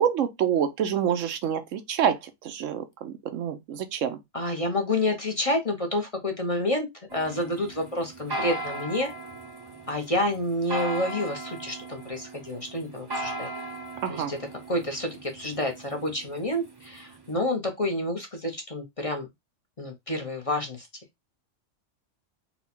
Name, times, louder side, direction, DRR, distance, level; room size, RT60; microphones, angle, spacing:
voice 1, 0.0-4.2 14.0-14.3, right 8 dB, 85° right, 1.0 m, -27 dB
voice 2, 4.3-9.1 9.9-13.5 14.1-19.3 19.8-20.9, left 1 dB, 30° left, 0.8 m, -29 dB
sound 1, 7.1-17.3, right 2 dB, 25° right, 0.7 m, -38 dB
4.3 x 2.3 x 4.2 m
omnidirectional pair, 1.3 m